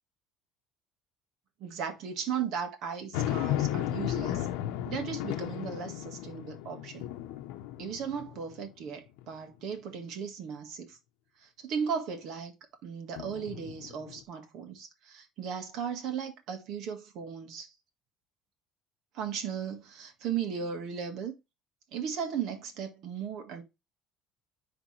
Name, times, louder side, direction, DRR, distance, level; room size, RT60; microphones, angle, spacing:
voice 1, 1.6-4.5 4.8-7.1 7.8-11.0 11.4-12.5 12.8-17.7 19.1-21.3 21.9-23.6, right 7 dB, 60° right, 1.7 m, -36 dB
sound 1, 3.1-8.7 9.2-9.3 13.2-14.2, left 13 dB, 90° left, 0.8 m, -34 dB
10.0 x 3.4 x 3.2 m
cardioid pair, 145°, 0 cm